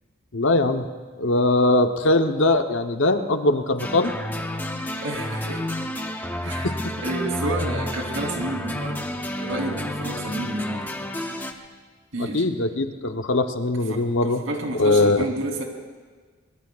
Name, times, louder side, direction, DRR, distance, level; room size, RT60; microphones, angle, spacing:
voice 1, 0.3-0.9 1.2-4.1 6.6-6.9 12.2-14.4 14.8-15.3, left 2 dB, 70° left, 6 dB, 1.0 m, -21 dB
sound 1, 3.8-11.5, left 1 dB, 10° left, 0.9 m, -30 dB
voice 2, 5.0-5.6 6.4-9.0 9.4-10.9 12.1-12.4 13.9-15.6, right 1 dB, 85° right, 0 dB, 3.5 m, -30 dB
24.0 x 22.5 x 2.5 m, 1.5 s
head